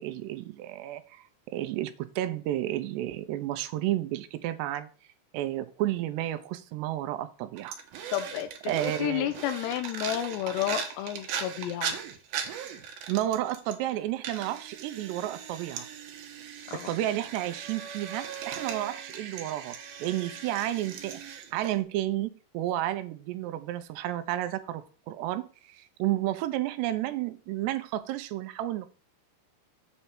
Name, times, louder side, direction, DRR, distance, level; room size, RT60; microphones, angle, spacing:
voice 1, 0.0-4.9 5.3-7.8 8.7-9.3 13.1-15.9 16.7-28.9, right 13 dB, 85° right, 2.8 m, -32 dB
sound 1, 7.6-13.9 14.2-21.8, right 7 dB, 70° right, 2.7 m, -39 dB
voice 2, 8.1-12.0 16.7-16.9, left 12 dB, 85° left, 2.9 m, -31 dB
8.1 x 4.3 x 7.2 m
omnidirectional pair, 4.9 m